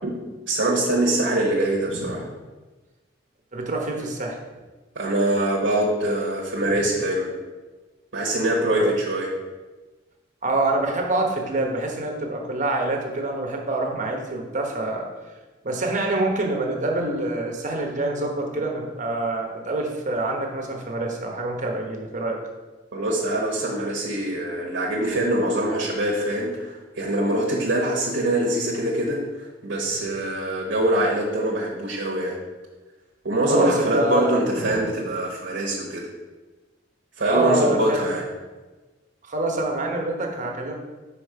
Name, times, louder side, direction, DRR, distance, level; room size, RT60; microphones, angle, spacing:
voice 1, 0.5-2.3 4.9-7.3 8.1-9.3 22.9-32.4 33.2-36.0 37.2-38.2, right 1 dB, 80° right, -3 dB, 1.1 m, -24 dB
voice 2, 1.8-2.2 3.5-4.4 8.8-8.9 10.4-15.0 15.6-22.4 33.5-34.8 37.3-38.0 39.2-40.7, right 2 dB, 40° right, 1 dB, 1.0 m, -26 dB
5.1 x 5.0 x 4.7 m, 1.2 s
head